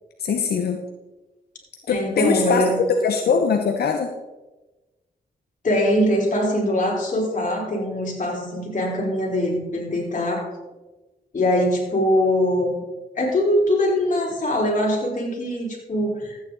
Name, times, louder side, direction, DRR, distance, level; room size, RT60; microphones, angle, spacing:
voice 1, 0.2-0.8 1.9-4.1, left 5 dB, 90° left, 5 dB, 0.8 m, -22 dB
voice 2, 1.9-2.8 5.6-10.5 11.3-12.7 13.2-16.4, left 1 dB, 55° left, -2 dB, 4.2 m, -22 dB
13.5 x 9.2 x 3.9 m, 1.1 s
cardioid pair, 55°, 16 cm